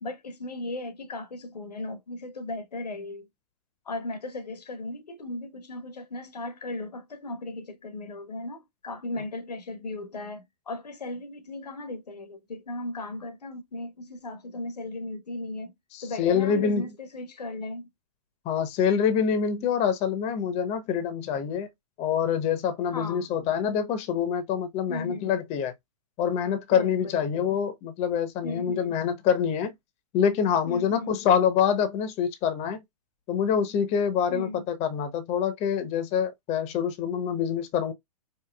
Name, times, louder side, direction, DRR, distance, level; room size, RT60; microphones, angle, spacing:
voice 1, 0.0-3.3 3.8-15.7 16.0-17.9 22.9-23.3 24.9-25.3 26.7-27.2 28.4-29.0 30.7-31.2 34.3-34.6, left 2 dB, 85° left, 1.1 m, -36 dB
voice 2, 15.9-16.8 18.4-21.7 22.0-25.7 26.2-29.7 30.1-32.8 33.3-37.9, left 7 dB, 30° left, 0.9 m, -26 dB
4.9 x 2.9 x 2.2 m
hypercardioid pair, 115°, 20 cm